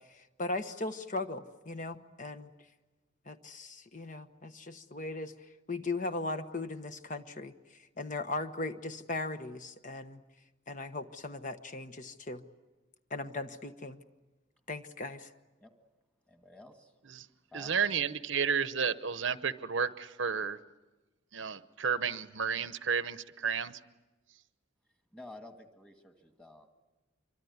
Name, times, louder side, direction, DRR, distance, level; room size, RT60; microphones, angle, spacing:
voice 1, 0.0-2.5 3.3-5.3 5.7-7.5 8.0-10.2 10.7-12.4 13.1-14.0 14.7-15.3, left 2 dB, 40° left, 9 dB, 1.1 m, -38 dB
voice 2, 16.3-16.9 17.5-17.7 25.1-26.7, left 2 dB, 5° left, 5 dB, 2.0 m, -51 dB
voice 3, 17.5-20.6 21.3-23.8, right 6 dB, 70° right, 13 dB, 0.9 m, -32 dB
26.0 x 24.0 x 9.6 m, 1.2 s
head